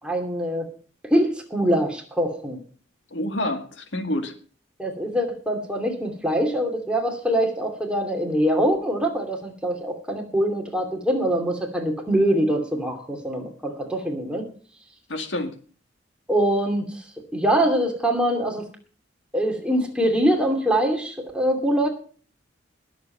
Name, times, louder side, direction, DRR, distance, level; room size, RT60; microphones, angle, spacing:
voice 1, 0.0-0.7 1.0-2.6 4.8-14.5 16.3-17.0 17.3-18.6 19.3-21.9, right 1 dB, 5° right, 2 dB, 2.7 m, -23 dB
voice 2, 3.1-4.3 15.1-15.5, left 1 dB, 75° left, 6 dB, 2.0 m, -28 dB
21.0 x 7.6 x 4.5 m, 0.41 s
head